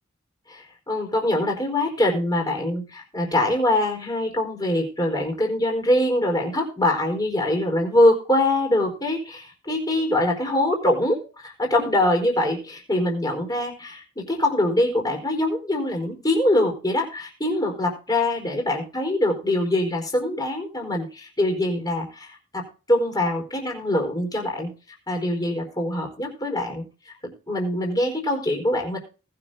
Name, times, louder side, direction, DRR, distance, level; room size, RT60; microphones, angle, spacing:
voice 1, 0.5-24.7 25.1-29.0, left 1 dB, 20° left, 2 dB, 4.6 m, -23 dB
19.5 x 6.9 x 3.9 m, 0.35 s
head